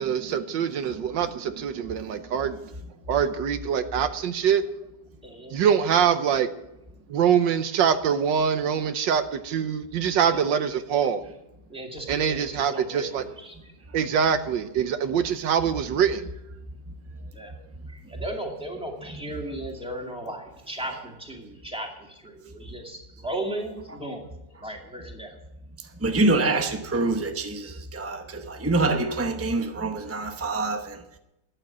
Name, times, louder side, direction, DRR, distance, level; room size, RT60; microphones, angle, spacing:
voice 1, 0.0-2.6 3.1-4.6 5.5-6.5 7.1-11.2 12.1-13.2 13.9-16.3, right 8 dB, 80° right, 1.5 m, -24 dB
voice 2, 5.2-5.6 10.2-10.6 11.0-11.1 11.7-13.7 17.3-17.5 17.9-24.3 24.6-25.4, right 1 dB, 5° right, 2.3 m, -36 dB
voice 3, 26.0-31.0, right 2 dB, 20° right, 0.3 m, -25 dB
13.0 x 9.1 x 7.3 m
omnidirectional pair, 2.0 m